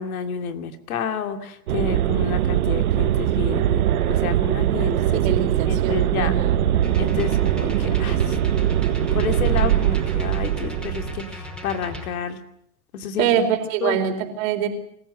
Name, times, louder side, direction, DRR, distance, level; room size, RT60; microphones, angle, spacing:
voice 1, 0.0-6.3 7.0-8.4 9.0-12.4 12.9-13.4 13.8-14.0, left 7 dB, 80° left, 7 dB, 2.7 m, -30 dB
sound 1, 1.7-11.3, right 12 dB, 85° right, 1.0 m, -21 dB
voice 2, 5.2-6.9 13.2-14.7, right 8 dB, 65° right, 6 dB, 4.7 m, -24 dB
sound 2, 6.8-12.1, left 2 dB, ahead, 5.1 m, -36 dB
26.0 x 15.5 x 9.6 m, 0.73 s
hypercardioid pair, 90°, 43 cm